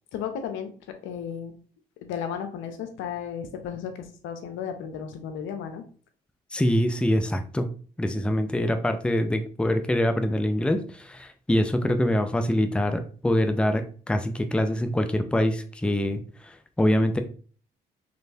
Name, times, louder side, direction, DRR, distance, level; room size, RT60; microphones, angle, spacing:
voice 1, 0.1-0.7 1.0-1.5 2.0-5.8, left 8 dB, 85° left, 7 dB, 0.7 m, -34 dB
voice 2, 6.5-7.7 8.0-17.2, left 1 dB, 5° left, 7 dB, 0.5 m, -24 dB
4.3 x 3.1 x 2.7 m, 0.42 s
supercardioid pair, 65°, 20 cm